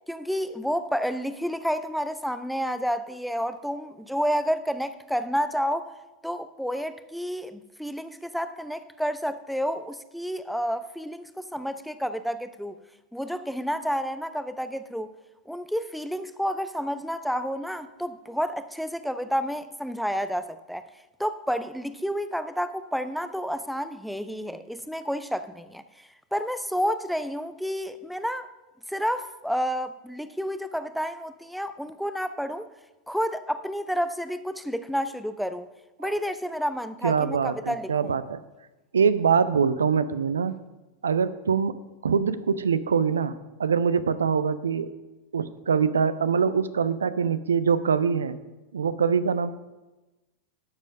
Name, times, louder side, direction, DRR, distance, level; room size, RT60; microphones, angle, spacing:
voice 1, 0.1-5.9 6.2-12.8 13.1-15.1 15.5-20.9 21.2-28.5 28.9-32.7 33.1-35.7 36.0-38.1, equal, ahead, 0.5 m, -30 dB
voice 2, 37.0-38.4 38.9-40.5 41.0-41.8 42.0-44.9 45.3-48.4 48.7-49.5, right 6 dB, 70° right, 0.5 m, -24 dB
12.0 x 7.4 x 5.2 m
figure-of-eight pair, 90°, 0 cm